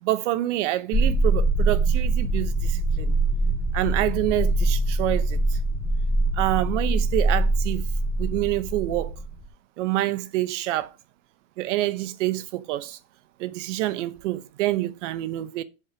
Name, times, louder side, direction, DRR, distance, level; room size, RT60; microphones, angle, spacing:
voice 1, 0.0-3.2 3.7-5.6 6.3-7.9 8.2-9.1 9.8-10.9 11.6-13.0 13.4-15.6, right 15 dB, 65° right, 0.9 m, -27 dB
sound 1, 0.9-9.5, right 2 dB, 10° left, 0.6 m, -23 dB
7.8 x 4.8 x 6.1 m
supercardioid pair, 175°, 38 cm